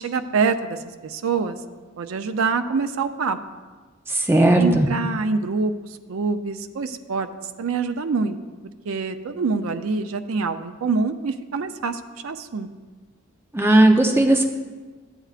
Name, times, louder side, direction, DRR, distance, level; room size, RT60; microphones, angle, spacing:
voice 1, 0.0-1.6 2.0-3.4 4.6-5.7 6.1-7.3 7.6-8.4 8.9-12.7, right 4 dB, 80° right, 8 dB, 0.5 m, -25 dB
voice 2, 4.1-4.9 13.5-14.4, right 1 dB, 10° right, 2 dB, 0.6 m, -16 dB
13.5 x 7.9 x 2.4 m, 1.4 s
head